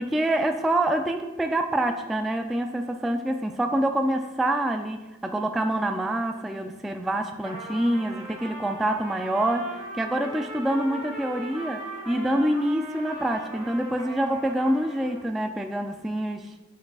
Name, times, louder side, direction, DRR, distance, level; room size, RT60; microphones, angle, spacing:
voice 1, 0.0-16.5, right 1 dB, ahead, 5 dB, 0.4 m, -26 dB
Trumpet, 7.4-15.3, right 1 dB, 85° right, 1.4 m, -39 dB
7.9 x 6.4 x 2.3 m, 1.2 s
wide cardioid pair, 60°, 31 cm